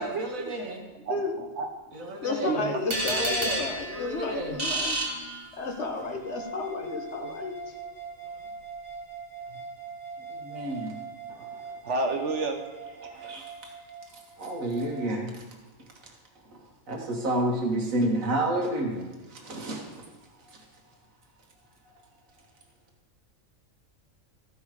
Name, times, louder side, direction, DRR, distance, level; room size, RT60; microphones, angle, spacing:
voice 1, 0.0-0.8 1.9-4.6 10.3-11.0 13.0-13.5 14.1-15.3 16.0-16.1 16.5-16.6 16.9-20.0 20.4-20.6, right 1 dB, 75° right, 1 dB, 1.7 m, -31 dB
voice 2, 0.9-2.6 11.3-12.6, right 3 dB, 60° right, 4 dB, 1.4 m, -32 dB
voice 3, 2.2-5.0 5.5-7.7 9.5-9.6, left 3 dB, 55° left, 4 dB, 1.4 m, -32 dB
sound 1, 2.9-5.9, right 1 dB, 45° right, 1.6 m, -31 dB
sound 2, 6.0-15.1, right 4 dB, 15° left, 2.0 m, -42 dB
13.5 x 5.4 x 4.9 m, 1.2 s
omnidirectional pair, 1.4 m